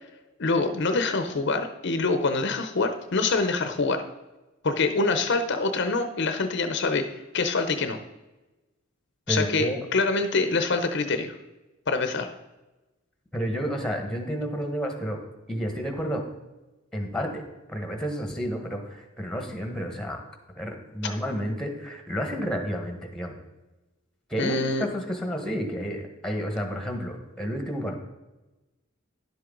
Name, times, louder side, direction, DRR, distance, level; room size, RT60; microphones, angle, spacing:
voice 1, 0.4-4.0 4.6-7.0 7.3-8.0 9.3-11.3 11.9-12.3 24.4-24.9, left 3 dB, 60° left, 8 dB, 0.7 m, -25 dB
voice 2, 9.3-9.8 13.3-15.2 15.5-16.2 16.9-17.4 17.7-20.2 20.5-23.3 24.3-28.0, equal, 5° left, 3 dB, 1.4 m, -30 dB
11.0 x 7.7 x 3.9 m, 1.1 s
head